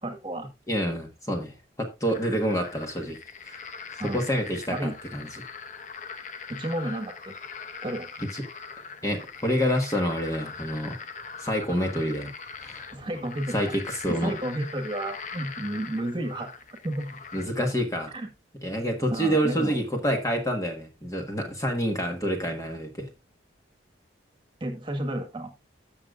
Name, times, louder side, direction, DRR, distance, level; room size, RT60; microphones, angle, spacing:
voice 1, 0.0-0.5 4.0-4.2 4.7-4.9 6.6-7.3 7.8-8.1 12.9-13.6 14.1-16.5 16.8-17.1 18.1-18.3 19.1-19.8 24.6-25.5, right 1 dB, 25° right, 1.5 m, -31 dB
voice 2, 0.7-3.2 3.4-3.6 4.0-5.3 8.3-8.4 9.0-11.0 11.4-12.3 12.6-12.9 13.5-14.3 17.3-18.1 18.6-23.1, equal, 15° left, 1.4 m, -27 dB
sound 1, 2.1-17.7, left 5 dB, 40° left, 0.8 m, -42 dB
14.5 x 6.7 x 2.4 m
head